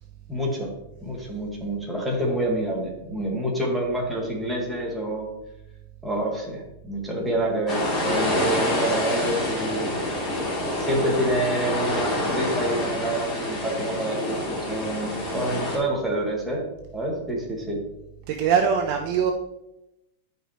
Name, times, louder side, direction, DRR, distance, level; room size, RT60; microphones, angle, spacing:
voice 1, 0.3-0.7 1.0-5.3 6.0-10.0 10.8-17.8, right 1 dB, 5° right, -3 dB, 1.6 m, -27 dB
sound 1, 7.7-15.8, left 1 dB, 15° left, 2.8 m, -27 dB
voice 2, 18.3-19.3, right 7 dB, 40° right, 4 dB, 0.7 m, -22 dB
12.0 x 5.1 x 3.0 m, 0.90 s
supercardioid pair, 170°, 0 cm